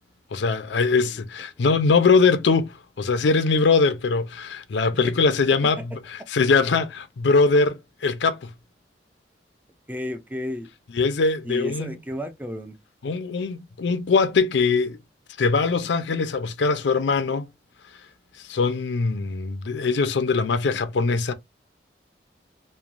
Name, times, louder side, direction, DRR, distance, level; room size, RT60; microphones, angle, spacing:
voice 1, 0.3-5.8 6.3-8.5 10.9-11.9 13.0-15.0 15.4-17.5 18.5-21.3, left 4 dB, 80° left, 0.5 m, -21 dB
voice 2, 0.9-1.2 5.6-6.0 9.9-10.7 11.4-12.8, left 1 dB, 10° right, 0.3 m, -33 dB
3.1 x 2.1 x 2.5 m
head